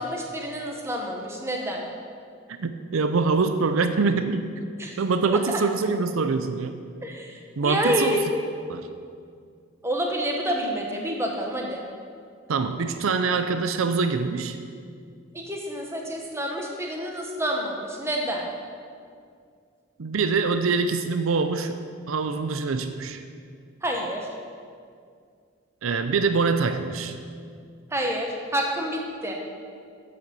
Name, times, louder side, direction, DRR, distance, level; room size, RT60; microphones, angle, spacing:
voice 1, 0.0-1.9 4.8-5.0 5.3-5.6 7.0-8.2 9.8-11.9 15.3-18.5 23.8-24.3 27.9-29.4, equal, 10° right, 0 dB, 1.1 m, -28 dB
voice 2, 2.6-4.5 5.0-6.8 7.6-8.1 8.7-8.9 12.5-14.6 20.0-21.8 22.1-23.2 25.8-27.2, right 4 dB, 80° right, 9 dB, 0.5 m, -24 dB
8.0 x 7.9 x 6.8 m, 2.2 s
head